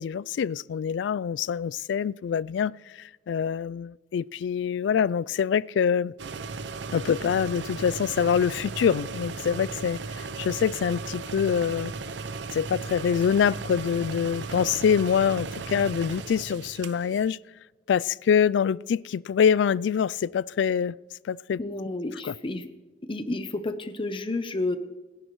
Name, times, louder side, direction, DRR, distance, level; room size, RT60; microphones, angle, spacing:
voice 1, 0.0-6.1 6.9-11.9 12.5-17.4 17.9-20.9 21.2-21.6 22.2-22.3, left 7 dB, 85° left, 0.3 m, -25 dB
sound 1, 6.2-17.3, right 4 dB, 75° right, 0.6 m, -36 dB
voice 2, 21.6-22.7 23.1-24.8, left 2 dB, 30° left, 0.7 m, -30 dB
28.0 x 10.5 x 3.1 m
head